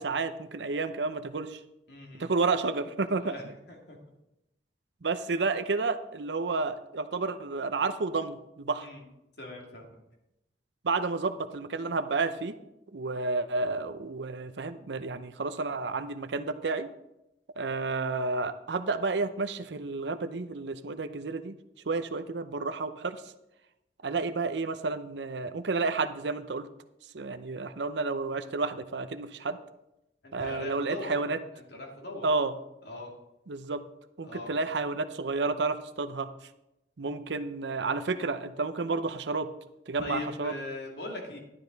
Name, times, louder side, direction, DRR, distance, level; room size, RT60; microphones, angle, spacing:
voice 1, 0.0-1.6 2.2-3.3 5.0-8.9 10.8-12.5 12.9-16.9 17.6-21.5 21.9-23.2 24.0-26.7 27.1-29.6 30.3-31.4 32.2-32.5 33.5-33.8 34.2-36.3 37.0-39.5 39.9-40.5, right 3 dB, 80° right, 10 dB, 0.7 m, -31 dB
voice 2, 1.9-2.3 3.2-3.4 3.7-4.0 8.8-9.0 9.4-10.0 30.2-31.1 31.5-32.3 32.8-33.1 34.2-34.5 40.0-41.4, left 2 dB, 70° left, 1 dB, 2.5 m, -40 dB
12.0 x 10.5 x 4.0 m, 0.90 s
head